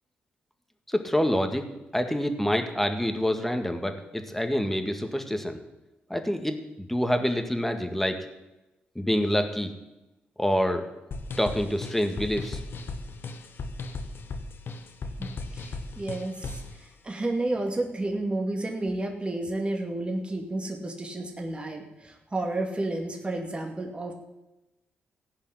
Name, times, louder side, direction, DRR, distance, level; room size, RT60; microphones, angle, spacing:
voice 1, 0.9-1.7 1.9-5.6 6.1-8.2 9.0-9.7 10.4-10.8 11.4-12.6, equal, 5° left, 6 dB, 2.0 m, -27 dB
sound 1, 11.1-16.7, left 3 dB, 60° left, 1.4 m, -37 dB
voice 2, 15.2-24.1, right 2 dB, 25° right, 2 dB, 2.4 m, -31 dB
16.0 x 5.7 x 9.7 m, 0.99 s
supercardioid pair, 60°, 4 cm